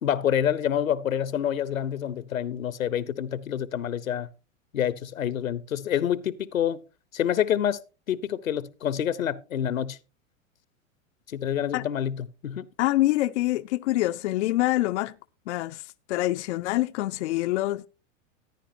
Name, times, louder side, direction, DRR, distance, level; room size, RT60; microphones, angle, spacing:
voice 1, 0.0-4.3 4.7-6.8 7.1-7.8 8.1-10.0 11.3-12.7, left 9 dB, 85° left, 0.8 m, -27 dB
voice 2, 12.8-15.1 15.5-17.9, left 17 dB, 60° left, 0.5 m, -25 dB
14.5 x 10.0 x 2.6 m
hypercardioid pair, 100°, 39 cm